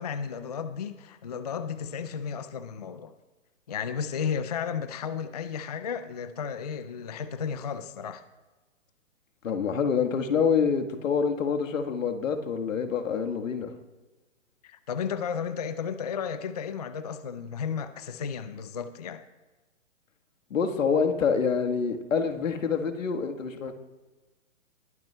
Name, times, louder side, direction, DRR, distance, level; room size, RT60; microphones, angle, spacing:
voice 1, 0.0-3.1 3.7-8.2 14.6-19.2, left 7 dB, 35° left, 11 dB, 0.4 m, -33 dB
voice 2, 9.4-13.7 20.5-23.8, left 6 dB, 75° left, 5 dB, 1.5 m, -26 dB
21.0 x 10.5 x 2.2 m, 1.2 s
hypercardioid pair, 155°, 39 cm